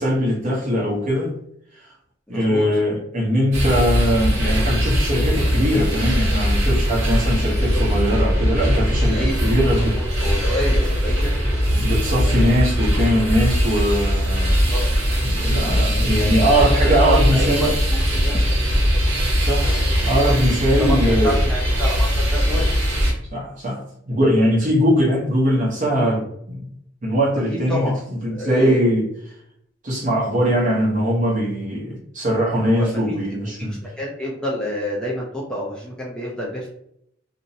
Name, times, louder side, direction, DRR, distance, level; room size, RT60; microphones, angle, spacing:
voice 1, 0.0-1.3 2.3-10.1 11.7-14.6 15.2-17.7 19.4-19.7 20.0-21.4 23.3-26.7 27.0-29.1 29.8-33.8, equal, 40° right, -3 dB, 0.8 m, -21 dB
voice 2, 2.3-2.7 7.7-7.8 9.2-9.4 9.8-11.3 14.7-14.8 16.8-18.6 20.8-22.7 27.5-28.0 28.3-28.8 32.6-33.4 33.7-36.7, equal, 5° left, -4 dB, 0.4 m, -28 dB
sound 1, 3.5-23.1, equal, 75° right, 0.8 m, -20 dB
2.5 x 2.0 x 2.7 m, 0.72 s
head